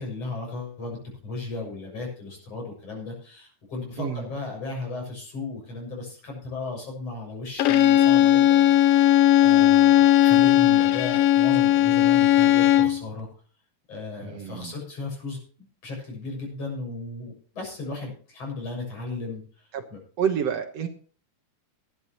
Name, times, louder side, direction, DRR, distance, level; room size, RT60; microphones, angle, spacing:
voice 1, 0.0-13.3 13.9-15.4 15.8-20.0, left 3 dB, 55° left, 0 dB, 8.0 m, -35 dB
voice 2, 4.0-4.3 9.6-10.2 14.2-14.7 19.7-19.8 20.2-20.9, right 8 dB, 65° right, 5 dB, 2.2 m, -29 dB
Bowed string instrument, 7.6-13.0, left 12 dB, 75° left, 1.6 m, -17 dB
18.5 x 12.5 x 3.0 m, 0.43 s
omnidirectional pair, 3.4 m